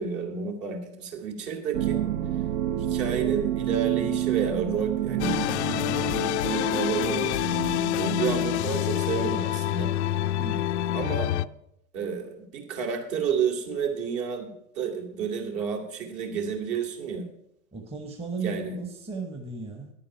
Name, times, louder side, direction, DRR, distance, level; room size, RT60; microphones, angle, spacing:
voice 1, 0.0-2.0 2.8-5.7 6.4-7.3 8.0-9.9 10.9-11.3 11.9-17.3 18.4-18.8, right 6 dB, 50° right, 3 dB, 2.7 m, -30 dB
sound 1, 1.7-8.4, right 11 dB, 65° right, 0.8 m, -29 dB
sound 2, 5.2-11.5, left 13 dB, 50° left, 0.4 m, -27 dB
voice 2, 10.4-10.7 17.7-19.9, right 4 dB, 15° right, 4 dB, 1.2 m, -35 dB
10.0 x 9.0 x 5.7 m, 0.77 s
figure-of-eight pair, 90°, 46 cm